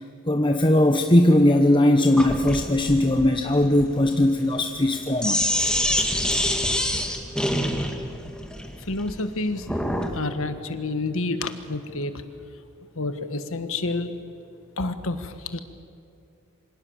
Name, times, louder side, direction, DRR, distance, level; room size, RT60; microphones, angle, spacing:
voice 1, 0.3-5.4, left 1 dB, 20° left, 5 dB, 1.0 m, -19 dB
Sink (filling or washing), 2.1-10.2, left 1 dB, 5° left, 2.0 m, -26 dB
voice 2, 8.9-9.7 10.1-12.1 12.9-14.1 14.8-15.6, left 2 dB, 65° left, 9 dB, 1.6 m, -29 dB
27.0 x 25.0 x 7.3 m, 2.5 s
head